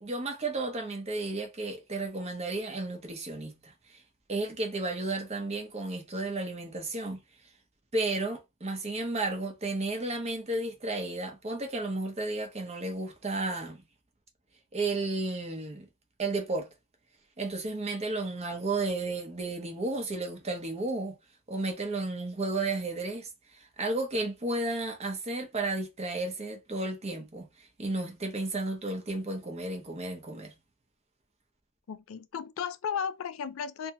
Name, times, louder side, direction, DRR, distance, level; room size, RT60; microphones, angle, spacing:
voice 1, 0.0-4.0 4.3-7.2 7.9-13.8 14.7-15.9 16.2-16.7 17.4-21.2 21.5-30.5, right 2 dB, 30° right, 0.7 m, -33 dB
voice 2, 31.9-33.9, left 7 dB, 70° left, 0.3 m, -34 dB
2.7 x 2.7 x 2.2 m
head